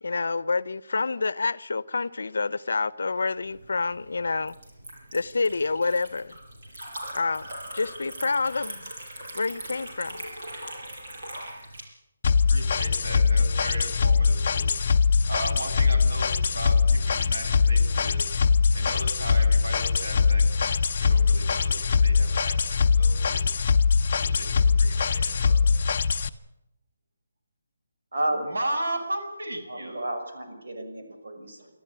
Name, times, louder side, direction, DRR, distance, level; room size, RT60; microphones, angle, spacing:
voice 1, 0.0-4.6 5.1-6.3 7.1-7.5 7.7-8.9 9.3-10.2, left 4 dB, 75° left, 0.8 m, -28 dB
Liquid, 3.5-11.8, right 1 dB, 45° right, 6.7 m, -40 dB
sound 1, 12.2-26.3, left 5 dB, 30° left, 0.9 m, -22 dB
voice 2, 12.5-14.7 15.3-18.3 18.7-20.7 21.0-21.7 22.0-23.6 24.2-25.6 28.3-30.0, right 1 dB, 90° right, 6.9 m, -36 dB
voice 3, 28.1-28.4 29.7-31.7, right 1 dB, 65° right, 6.3 m, -31 dB
24.5 x 13.5 x 10.0 m
hypercardioid pair, 175°, 0 cm